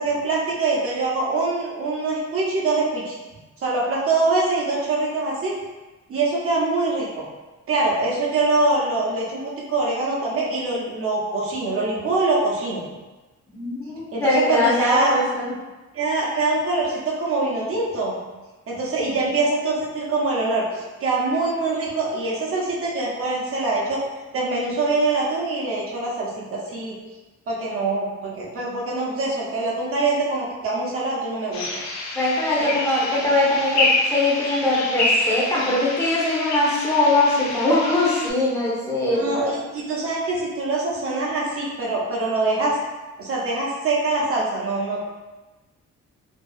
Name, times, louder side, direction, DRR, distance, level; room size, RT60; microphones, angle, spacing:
voice 1, 0.0-3.2 3.6-5.5 6.1-7.2 7.7-12.8 14.1-15.2 15.9-18.2 18.7-24.0 24.3-27.0 27.5-31.6 32.6-32.7 39.1-42.8 43.2-45.0, right 3 dB, 50° right, -4 dB, 0.7 m, -24 dB
voice 2, 13.5-15.5 32.1-39.5, left 2 dB, 10° left, -7 dB, 0.8 m, -21 dB
sound 1, 31.5-38.3, left 2 dB, 70° left, 0.5 m, -27 dB
2.6 x 2.3 x 2.3 m, 1.2 s
cardioid pair, 140°, 29 cm